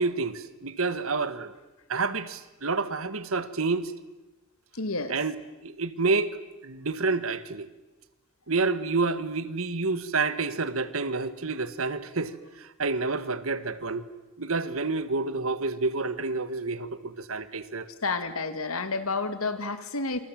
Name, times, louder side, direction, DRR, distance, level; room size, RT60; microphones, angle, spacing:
voice 1, 0.0-1.5 1.9-3.9 5.1-5.3 5.6-7.7 8.5-14.1 14.4-17.9, right 3 dB, 75° right, 13 dB, 1.7 m, -29 dB
voice 2, 4.7-5.2 18.0-20.2, left 3 dB, 80° left, 10 dB, 2.4 m, -30 dB
28.0 x 27.5 x 7.7 m, 1.1 s
head